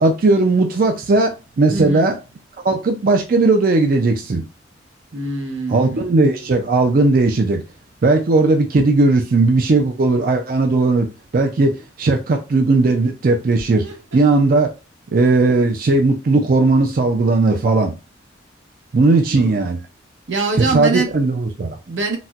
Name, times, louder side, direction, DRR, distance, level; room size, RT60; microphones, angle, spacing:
voice 1, 0.0-2.1 2.6-4.4 5.7-7.6 8.0-11.1 11.3-13.8 14.1-14.7 15.1-17.9 18.9-19.8 20.6-21.8, right 3 dB, 50° right, 0.4 m, -17 dB
voice 2, 1.7-2.1 5.1-6.0 13.8-14.2 19.1-19.6 20.3-21.1 21.9-22.2, right 4 dB, 90° right, 0.9 m, -24 dB
4.0 x 2.1 x 2.3 m
head